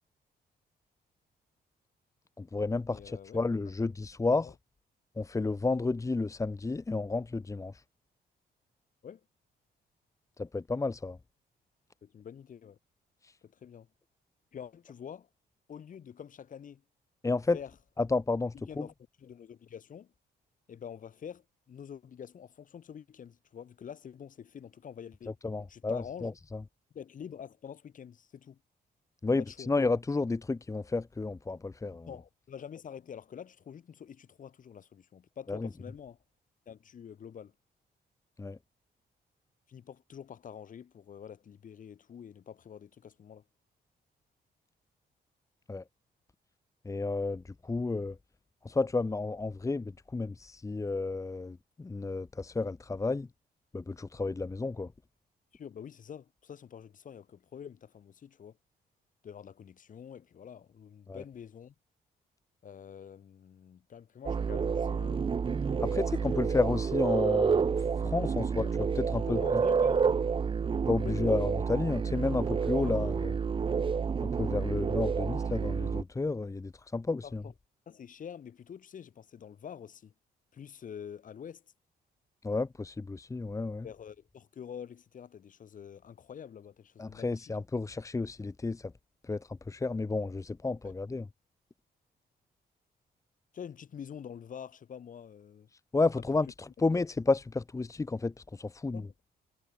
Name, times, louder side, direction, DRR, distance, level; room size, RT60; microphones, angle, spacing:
voice 1, 2.4-4.5 5.2-7.8 10.4-11.2 13.2-13.3 17.2-17.6 18.0-18.9 25.4-26.6 29.2-32.1 35.5-35.7 38.4-38.6 45.7-45.8 46.8-48.2 48.6-53.3 53.7-54.9 61.1-61.2 65.8-68.7 68.9-69.6 70.9-73.3 74.2-77.4 82.4-83.8 87.0-88.9 89.2-91.3 95.9-99.0, left 3 dB, 20° left, 1.5 m, -32 dB
voice 2, 2.9-3.4 4.4-4.5 9.0-9.2 12.0-12.8 13.4-13.9 14.5-15.3 15.7-16.8 17.5-17.7 18.7-20.1 20.7-25.4 25.7-26.3 26.9-28.6 29.4-29.7 31.9-36.2 36.7-37.5 39.7-43.4 55.5-58.6 59.2-61.7 62.6-65.3 65.6-66.4 68.5-68.7 69.3-70.1 70.9-71.4 72.7-73.0 77.2-77.5 77.9-80.1 80.5-81.6 83.8-87.5 90.8-90.9 93.5-95.7 98.9-99.1, left 8 dB, 50° left, 4.6 m, -46 dB
sound 1, 64.3-76.0, right 6 dB, 30° right, 0.9 m, -29 dB
cardioid pair, 140°, 17 cm